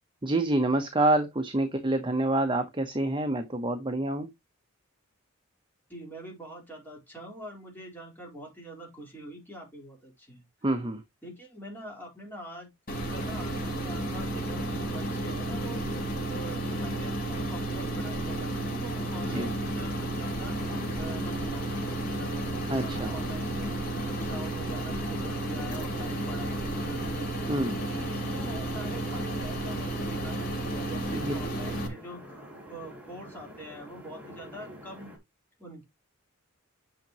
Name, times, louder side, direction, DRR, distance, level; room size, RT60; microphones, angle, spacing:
voice 1, 0.2-4.3 10.6-11.0 19.2-19.5 22.7-23.1 27.5-27.7 31.1-31.3, right 1 dB, 20° right, 0.9 m, -27 dB
voice 2, 5.9-10.4 11.2-20.6 20.9-22.4 22.7-23.7 24.0-35.1 35.6-35.8, right 1 dB, 10° left, 3.9 m, -44 dB
sound 1, 12.9-31.9, right 1 dB, 45° left, 2.7 m, -32 dB
sound 2, 20.4-35.2, equal, 5° right, 2.7 m, -47 dB
8.9 x 5.8 x 2.9 m
head